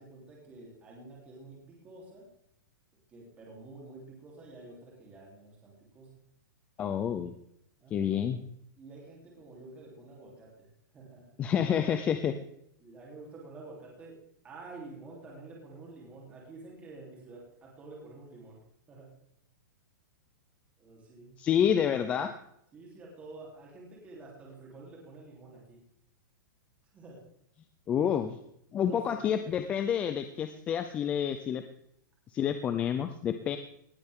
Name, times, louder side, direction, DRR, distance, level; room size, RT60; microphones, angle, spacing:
voice 1, 0.0-2.3 3.1-6.2 7.8-8.1 8.8-11.4 12.8-14.2 14.4-18.6 18.9-19.1 20.8-21.4 22.7-25.8 26.9-27.2 28.8-29.3, right 3 dB, 10° right, -3 dB, 3.5 m, -49 dB
voice 2, 6.8-7.3 7.9-8.4 11.4-12.3 21.4-22.3 27.9-28.4 28.7-31.6 32.3-33.6, left 8 dB, 10° left, 9 dB, 0.4 m, -28 dB
19.0 x 12.5 x 3.7 m, 0.73 s
supercardioid pair, 175°, 11 cm